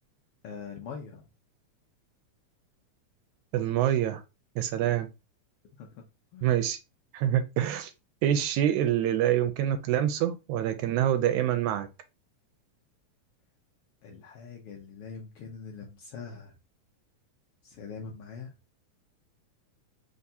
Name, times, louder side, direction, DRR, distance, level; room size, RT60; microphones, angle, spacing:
voice 1, 0.4-1.3 5.8-6.0 6.3-6.7 14.0-16.5 17.6-18.5, left 5 dB, 70° left, 1.4 m, -43 dB
voice 2, 3.5-4.2 4.6-5.1 6.4-6.8 7.1-7.9 8.2-11.9, right 11 dB, 85° right, 2.0 m, -26 dB
4.5 x 3.6 x 2.7 m
omnidirectional pair, 3.4 m